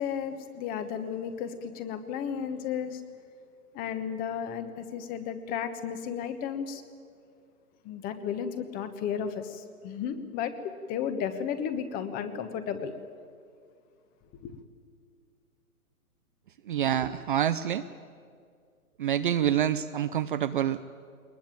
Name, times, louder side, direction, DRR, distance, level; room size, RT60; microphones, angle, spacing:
voice 1, 0.0-3.0 3.7-6.8 7.8-10.5 10.9-12.9 14.4-14.6, left 8 dB, 20° left, 10 dB, 1.3 m, -33 dB
voice 2, 16.7-17.8 19.0-20.8, right 10 dB, 35° right, 12 dB, 0.6 m, -27 dB
22.0 x 20.5 x 9.1 m, 2.2 s
hypercardioid pair, 140°, 44 cm